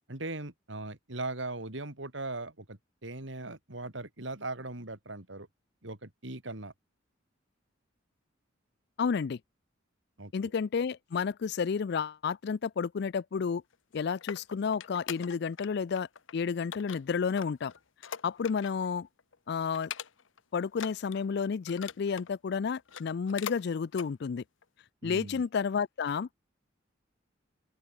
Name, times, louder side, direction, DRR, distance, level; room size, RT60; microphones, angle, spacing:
voice 1, 0.1-5.5 5.8-6.7 10.2-10.5 25.0-25.4, right 2 dB, 65° right, 3.1 m, -39 dB
voice 2, 9.0-9.4 10.3-13.6 13.9-17.7 18.2-19.1 19.5-19.9 20.5-24.4 25.0-26.3, left 6 dB, 55° left, 0.4 m, -31 dB
sound 1, 13.7-15.7 16.0-16.3 16.7-18.9 19.2-19.4 19.7-20.4 20.7-22.3 22.8-23.6 23.9-24.1 24.6-24.7, left 8 dB, 75° left, 0.9 m, -42 dB
open air
head